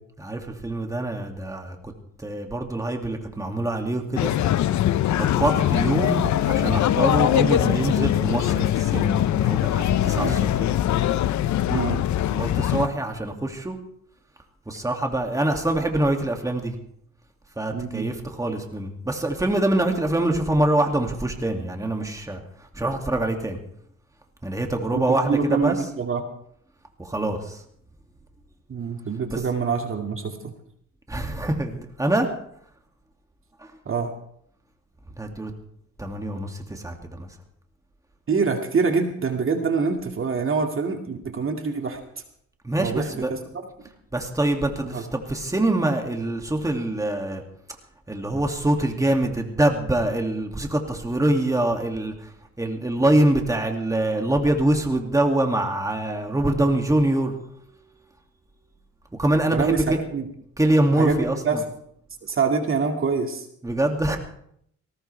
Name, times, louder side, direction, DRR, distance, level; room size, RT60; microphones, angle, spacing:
voice 1, 0.2-1.9 2.2-4.3 5.2-10.7 12.3-13.8 14.7-16.8 17.6-22.4 22.7-23.6 24.4-25.8 27.0-27.6 29.3-29.4 31.1-32.3 33.6-33.7 35.2-35.5 36.0-37.3 42.6-43.3 44.1-47.4 48.1-52.3 52.6-57.4 59.2-60.0 60.6-61.6 63.6-64.2, right 1 dB, 10° right, 3 dB, 2.4 m, -24 dB
sound 1, 4.2-12.9, left 12 dB, 70° left, 0.8 m, -22 dB
voice 2, 11.7-12.0 17.7-18.1 24.9-26.2 28.7-30.5 33.9-34.1 38.3-42.0 42.8-43.1 44.9-45.0 59.5-60.3 60.9-61.6 62.2-63.5, right 5 dB, 45° right, 4 dB, 2.3 m, -25 dB
19.5 x 18.5 x 3.4 m, 0.69 s
cardioid pair, 90°, 30 cm